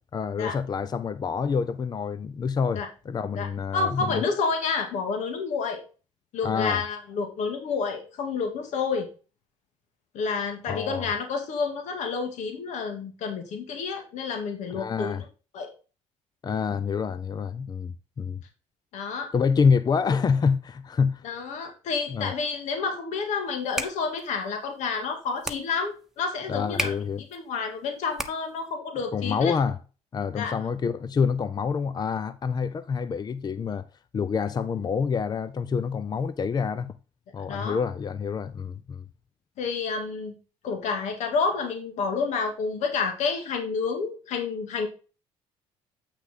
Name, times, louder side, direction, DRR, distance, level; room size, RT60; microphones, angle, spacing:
voice 1, 0.1-4.3 6.4-6.8 10.7-11.0 14.7-15.3 16.4-18.4 19.3-21.2 22.1-22.3 26.5-27.2 29.1-29.8 30.1-33.9 34.1-36.9 37.3-39.0, left 6 dB, 30° left, 0.6 m, -27 dB
voice 2, 3.7-5.8 6.3-9.1 10.1-15.2 15.5-15.7 18.9-19.3 21.2-27.0 27.3-29.5 30.3-30.5 37.5-37.8 39.6-40.3 40.6-44.9, left 5 dB, 70° left, 2.0 m, -29 dB
sound 1, 23.5-28.7, right 1 dB, 5° right, 1.2 m, -37 dB
8.4 x 5.9 x 3.8 m
cardioid pair, 90°, 13 cm